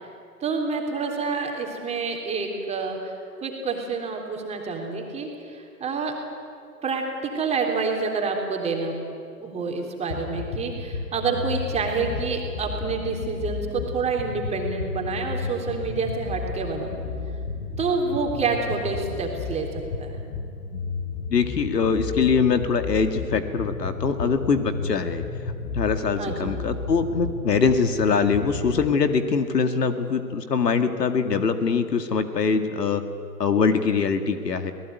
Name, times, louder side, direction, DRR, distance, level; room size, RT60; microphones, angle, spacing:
voice 1, 0.4-3.1 3.4-6.1 6.8-8.9 9.4-16.9 17.8-20.1 26.2-26.5, right 4 dB, 15° right, 1 dB, 3.4 m, -28 dB
sound 1, 10.1-28.9, left 4 dB, 50° left, 4.9 m, -33 dB
voice 2, 21.3-25.2 25.7-33.0 33.4-34.7, left 5 dB, 75° left, 8 dB, 2.3 m, -23 dB
26.5 x 19.0 x 9.4 m, 2.3 s
hypercardioid pair, 130°, 49 cm